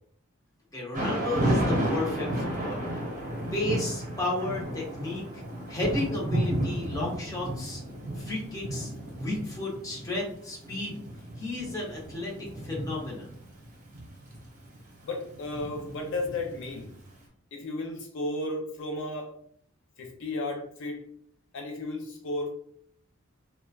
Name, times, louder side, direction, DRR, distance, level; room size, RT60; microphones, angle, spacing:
voice 1, 0.7-3.0 3.5-5.4 5.7-7.8 8.2-8.9 9.2-11.0 11.4-13.3, left 2 dB, 15° left, -4 dB, 0.8 m, -33 dB
Thunder / Rain, 0.9-17.0, right 1 dB, 40° right, 0.8 m, -33 dB
voice 2, 15.0-16.9 17.5-19.3 20.0-21.0 21.5-22.5, left 2 dB, 60° left, 1 dB, 0.4 m, -34 dB
3.0 x 2.2 x 2.3 m, 0.64 s
head